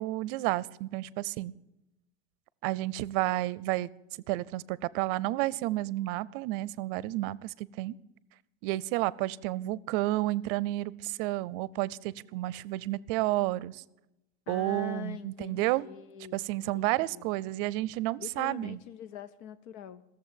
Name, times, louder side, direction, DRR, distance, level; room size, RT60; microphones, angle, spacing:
voice 1, 0.0-1.5 2.6-3.9 4.3-8.0 8.6-13.8 14.5-15.9 16.3-18.8, right 17 dB, 55° right, 22 dB, 0.5 m, -31 dB
voice 2, 14.5-17.3 18.2-20.0, left 9 dB, 85° left, 13 dB, 0.8 m, -44 dB
16.0 x 7.2 x 9.0 m, 0.92 s
cardioid pair, 175°, 32 cm